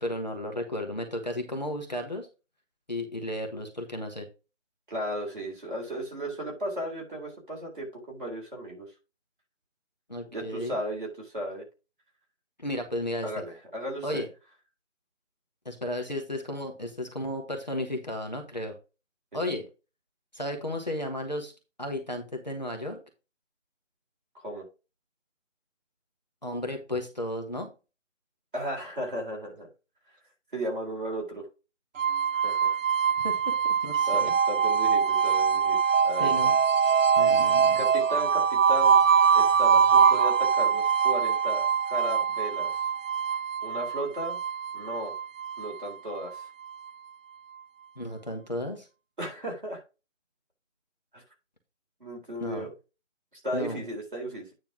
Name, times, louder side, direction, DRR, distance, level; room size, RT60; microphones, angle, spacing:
voice 1, 0.0-2.3 2.9-4.3 10.1-10.8 12.6-13.3 14.0-14.3 15.6-18.7 19.3-19.6 20.3-21.5 21.8-23.0 26.4-27.7 33.2-34.3 36.2-36.6 37.2-37.8 47.9-48.9 52.4-52.7 53.5-53.8, left 1 dB, 35° left, 2 dB, 1.3 m, -33 dB
voice 2, 4.9-8.9 10.3-11.6 13.2-14.3 24.3-24.7 28.5-29.7 30.5-31.5 32.3-32.8 34.1-35.8 36.0-36.3 37.7-39.0 39.3-42.7 43.6-44.4 44.7-45.1 45.6-46.5 49.2-49.8 51.1-51.2 52.0-52.7 53.3-54.5, equal, 40° right, -2 dB, 3.7 m, -35 dB
sound 1, 32.0-46.9, right 6 dB, 80° right, 0.5 m, -23 dB
9.3 x 3.4 x 5.9 m, 0.29 s
figure-of-eight pair, 180°, 38 cm